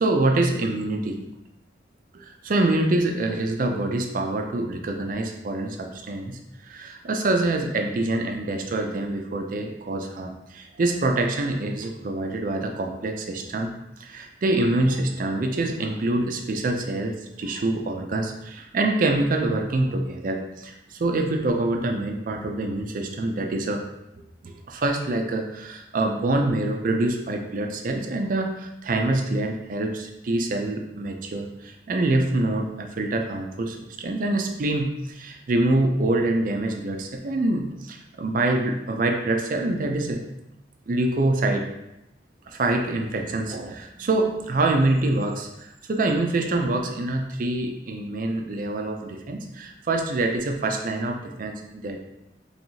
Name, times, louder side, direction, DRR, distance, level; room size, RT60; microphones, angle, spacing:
voice 1, 0.0-1.2 2.1-13.7 14.0-23.8 24.4-40.2 40.9-41.7 42.5-52.0, right 2 dB, 50° right, 3 dB, 0.4 m, -25 dB
4.5 x 3.2 x 2.7 m, 0.87 s
head